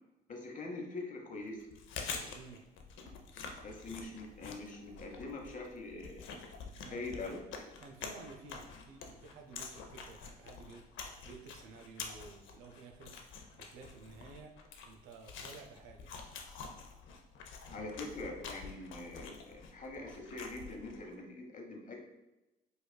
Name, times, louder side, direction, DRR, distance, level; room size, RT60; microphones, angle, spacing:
voice 1, 0.3-1.7 3.6-6.3 6.9-7.4 17.7-22.0, left 2 dB, 40° left, 2 dB, 0.9 m, -43 dB
Chewing mastication, 1.6-21.1, left 5 dB, 75° left, 0.5 m, -47 dB
voice 2, 6.8-7.3 7.8-14.5 14.8-16.1, right 4 dB, 85° right, 3 dB, 0.5 m, -53 dB
4.9 x 2.4 x 2.2 m, 0.99 s
supercardioid pair, 75°, 20 cm